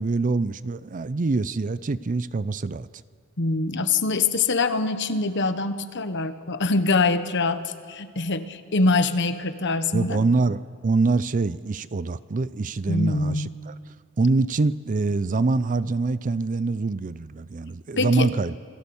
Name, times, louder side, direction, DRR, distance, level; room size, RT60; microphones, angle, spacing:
voice 1, 0.0-2.9 9.9-13.7 14.2-18.6, right 3 dB, 35° right, 16 dB, 0.5 m, -25 dB
voice 2, 3.4-10.2 12.9-13.5 18.0-18.3, left 3 dB, 55° left, 11 dB, 1.2 m, -24 dB
28.0 x 18.5 x 7.1 m, 2.1 s
head